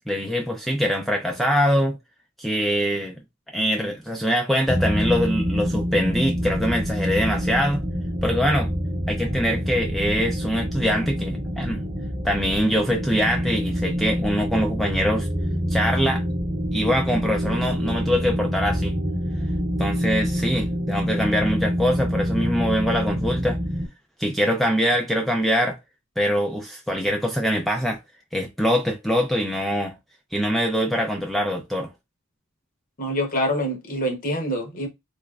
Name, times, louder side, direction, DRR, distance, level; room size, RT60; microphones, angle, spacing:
voice 1, 0.1-2.0 2.4-3.2 3.5-7.8 8.2-8.7 9.1-11.8 12.2-15.3 15.7-16.2 16.7-19.0 19.8-23.6 24.2-25.8 26.2-28.0 28.3-30.0 30.3-31.9, equal, ahead, 0.3 m, -23 dB
sound 1, 4.7-23.9, equal, 35° right, 1.0 m, -26 dB
voice 2, 33.0-34.9, equal, 40° left, 0.9 m, -25 dB
3.3 x 2.9 x 2.4 m
head